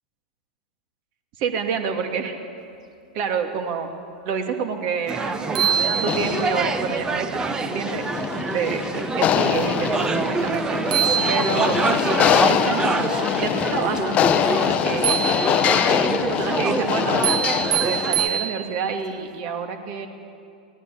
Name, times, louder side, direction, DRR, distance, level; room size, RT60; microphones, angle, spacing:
voice 1, 1.4-2.4 3.1-3.9 4.2-8.1 8.5-10.8 11.3-14.2 14.6-15.2 15.9-17.3 17.8-20.1, right 6 dB, 45° right, 5 dB, 2.5 m, -28 dB
sound 1, 5.1-18.3, right 4 dB, 15° right, 1.1 m, -27 dB
sound 2, 5.1-5.2 5.5-6.6 10.5-10.6 10.9-12.0 15.0-15.9 17.2-19.0, right 9 dB, 70° right, 1.0 m, -25 dB
sound 3, 6.0-18.4, left 9 dB, 30° left, 1.0 m, -24 dB
23.5 x 17.5 x 8.5 m, 2.4 s
figure-of-eight pair, 100°, 4 cm